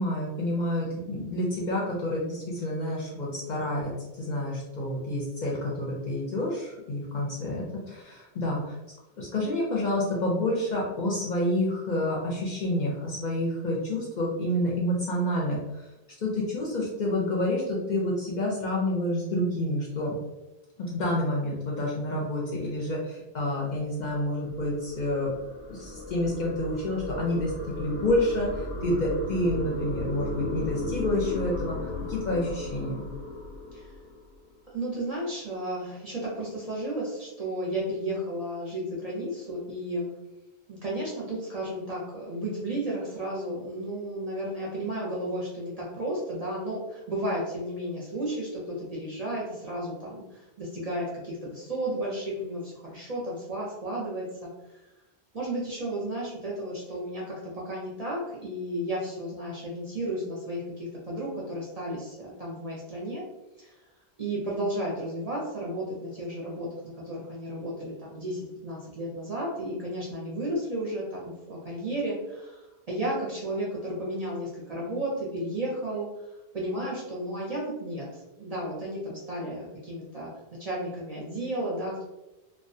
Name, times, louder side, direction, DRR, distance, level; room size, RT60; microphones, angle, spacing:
voice 1, 0.0-3.9 4.2-8.8 9.2-15.9 16.2-20.2 20.8-25.3 25.7-33.0, left 1 dB, 55° left, -4 dB, 0.6 m, -29 dB
sound 1, 23.8-34.4, left 1 dB, 90° left, 0.9 m, -35 dB
voice 2, 34.7-40.1 40.7-54.8 55.3-63.2 63.6-63.8 64.2-72.6 72.9-76.1 76.5-82.0, right 1 dB, 45° right, -5 dB, 0.6 m, -33 dB
2.2 x 2.1 x 2.6 m, 1.0 s
omnidirectional pair, 1.1 m